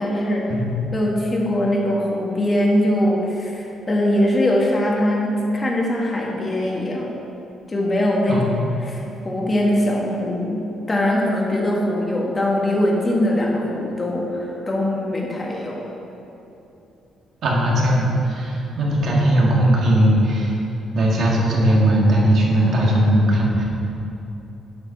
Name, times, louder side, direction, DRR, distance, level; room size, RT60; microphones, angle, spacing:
voice 1, 0.0-0.5 0.9-7.1 7.7-8.4 8.8-15.8, left 1 dB, 25° left, -2 dB, 1.7 m, -21 dB
voice 2, 17.4-20.6 20.9-23.6, right 1 dB, 65° right, -3 dB, 1.9 m, -18 dB
7.7 x 5.7 x 5.8 m, 2.9 s
cardioid pair, 90°, 0 cm